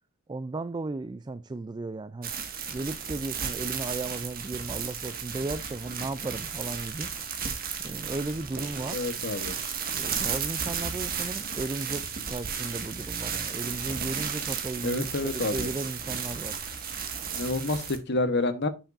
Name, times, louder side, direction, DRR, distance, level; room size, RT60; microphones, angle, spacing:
voice 1, 0.3-2.3 2.7-7.1 7.8-9.0 9.9-16.6, right 2 dB, 20° right, 0.3 m, -35 dB
sound 1, 2.2-18.0, right 6 dB, 45° right, 1.7 m, -34 dB
voice 2, 8.9-9.6 14.8-15.7 17.3-18.7, left 2 dB, 60° left, 1.1 m, -28 dB
8.9 x 7.1 x 2.6 m
head